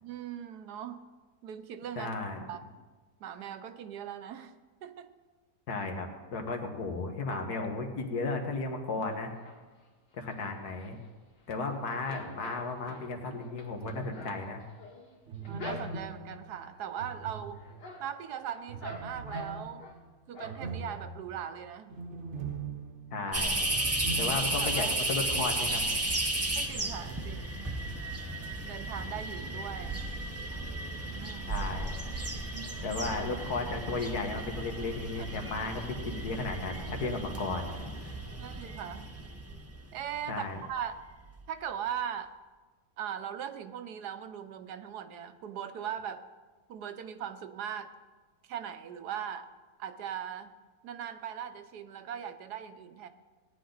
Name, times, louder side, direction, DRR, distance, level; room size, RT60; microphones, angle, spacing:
voice 1, 0.0-1.0 1.4-2.1 2.5-2.6 3.2-4.5 4.8-5.1 15.5-17.6 18.0-19.9 20.3-22.0 24.6-25.0 26.5-27.7 28.6-30.1 30.9-31.6 35.2-35.3 35.6-35.7 38.4-39.1 39.9-41.0 41.5-42.4 43.0-46.2 46.7-47.9 48.5-49.5 49.8-50.5 50.8-53.1, right 9 dB, 75° right, 10 dB, 1.2 m, -39 dB
voice 2, 2.0-2.4 5.7-9.3 10.1-11.0 11.5-14.6 23.1-23.6 24.2-25.8 31.5-32.0 32.8-38.2 40.3-40.6, left 3 dB, 65° left, 3 dB, 1.9 m, -34 dB
sound 1, 9.1-9.9 10.3-11.6 11.9-16.3 16.8-17.2 17.5-20.0 20.3-21.0 21.4-21.5 21.8-21.9, left 2 dB, 85° left, 2.7 m, -46 dB
sound 2, 13.8-14.5 15.3-18.0 18.7-24.9 25.2-25.3 27.0-27.4, right 4 dB, 50° right, 1.1 m, -42 dB
sound 3, 23.3-40.2 40.8-40.9 41.3-41.4, right 2 dB, 15° right, 0.4 m, -34 dB
18.0 x 10.0 x 4.0 m, 1.3 s
omnidirectional pair, 1.8 m